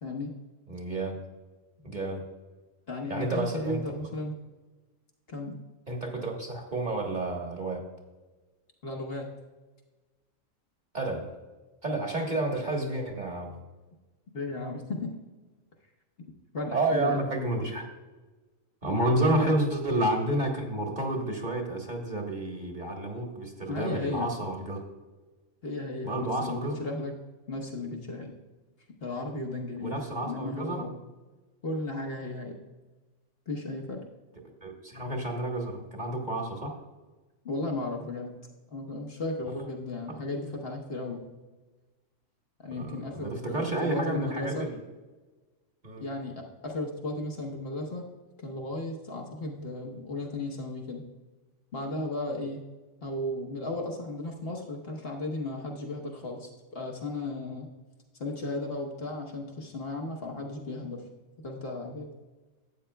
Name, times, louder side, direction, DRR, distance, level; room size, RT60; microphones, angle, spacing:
voice 1, 0.7-1.2 1.8-2.3 3.1-3.8 5.9-7.8 10.9-11.3 11.8-13.6 16.7-17.9 18.8-24.8 26.0-26.8 29.8-30.9 34.6-36.7 40.1-40.2 42.8-44.8 45.8-46.1, right 1 dB, 35° right, 1 dB, 1.3 m, -30 dB
voice 2, 2.9-4.3 5.3-5.5 8.8-9.3 14.3-15.1 16.5-17.2 19.4-19.5 23.7-24.3 25.6-27.1 27.5-28.3 29.0-29.9 30.2-30.9 31.6-32.6 33.5-34.0 37.4-38.3 38.7-41.2 42.6-44.7 46.0-48.0 48.4-51.0 51.7-52.6 53.0-57.7 58.2-61.0 61.4-62.1, left 2 dB, 50° left, 0 dB, 1.2 m, -35 dB
12.5 x 8.6 x 2.2 m, 1.2 s
omnidirectional pair, 1.4 m